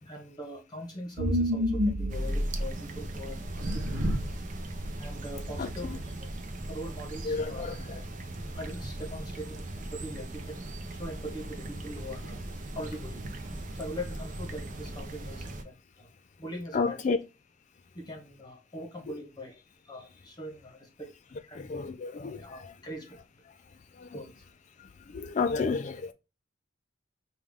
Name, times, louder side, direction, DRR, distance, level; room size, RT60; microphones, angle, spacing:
voice 1, 0.0-4.1 5.0-6.3 6.7-7.7 8.5-12.4 12.7-13.2 13.5-16.1 16.4-17.2 17.9-21.1 21.5-21.7 22.4-23.2 24.1-24.4, equal, 20° left, 0.9 m, -42 dB
sound 1, 1.2-2.7 3.4-4.4 4.8-4.9 5.3-6.2, equal, 85° right, 0.7 m, -29 dB
sound 2, 2.1-15.6, right 1 dB, 40° right, 0.7 m, -39 dB
voice 2, 7.2-8.0 16.7-17.2 21.5-22.7 24.0-24.2 25.1-26.1, left 4 dB, 40° left, 0.3 m, -31 dB
5.3 x 2.3 x 3.4 m
head